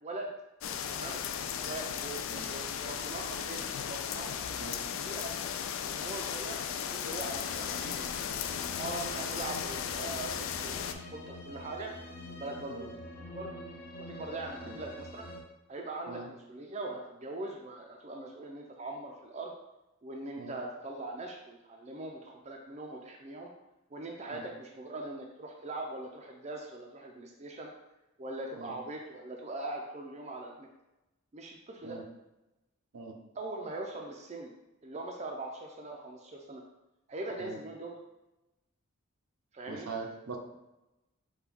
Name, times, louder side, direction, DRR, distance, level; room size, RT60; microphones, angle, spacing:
voice 1, 0.0-0.3 0.9-1.2 1.6-4.4 5.0-5.3 5.9-8.1 8.8-11.9 12.3-13.5 14.0-15.3 15.7-19.5 20.0-23.5 23.9-27.7 28.2-30.7 31.3-32.0 33.4-34.5 34.8-36.6 37.1-38.0 39.5-39.9, right 2 dB, 30° right, 1 dB, 0.4 m, -41 dB
sound 1, 0.6-10.9, left 8 dB, 70° left, 0.3 m, -36 dB
sound 2, 7.2-15.4, left 1 dB, 45° left, 0.7 m, -46 dB
voice 2, 39.7-40.4, right 4 dB, 80° right, 3 dB, 0.6 m, -42 dB
5.9 x 2.2 x 3.5 m, 0.98 s
head